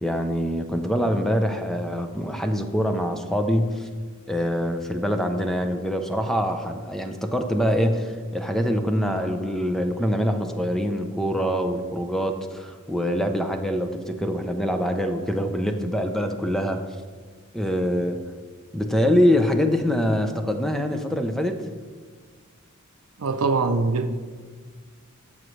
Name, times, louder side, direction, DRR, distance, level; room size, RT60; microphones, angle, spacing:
voice 1, 0.0-3.9 4.3-16.8 17.5-18.2 18.7-21.6, equal, ahead, 0.5 m, -24 dB
voice 2, 23.2-24.1, right 3 dB, 85° right, 0.6 m, -23 dB
13.0 x 7.3 x 3.2 m
head